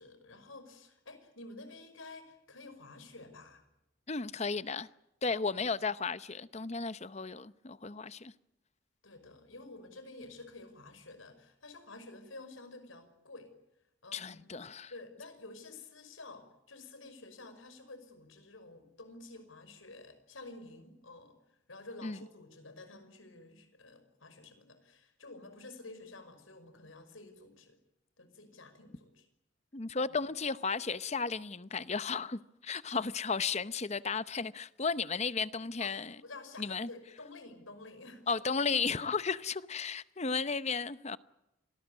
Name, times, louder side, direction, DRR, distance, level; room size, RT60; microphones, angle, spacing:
voice 1, 0.0-3.6 5.3-5.7 9.0-13.5 14.0-14.4 14.9-27.8 28.2-29.3 35.8-38.5, left 2 dB, 90° left, 5.5 m, -51 dB
voice 2, 4.1-4.9 5.2-8.3 14.1-14.9 22.0-22.2 29.7-36.1 36.6-36.9 38.3-41.2, left 4 dB, 35° left, 0.8 m, -34 dB
26.5 x 19.5 x 8.4 m
head